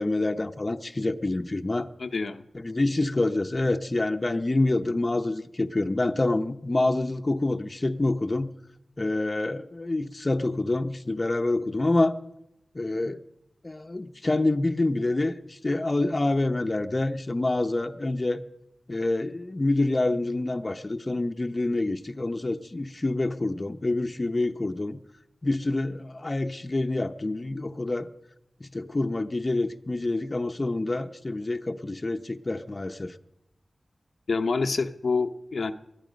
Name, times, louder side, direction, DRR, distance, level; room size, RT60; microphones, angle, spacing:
voice 1, 0.0-1.9 2.5-8.5 9.0-12.1 12.7-13.2 13.6-18.4 18.9-25.0 25.4-28.1 28.6-33.1, left 2 dB, 35° left, 7 dB, 0.8 m, -27 dB
voice 2, 2.0-2.4 34.3-35.7, left 4 dB, 75° left, 7 dB, 0.8 m, -27 dB
20.5 x 12.5 x 5.2 m, 0.87 s
wide cardioid pair, 70°, 0 cm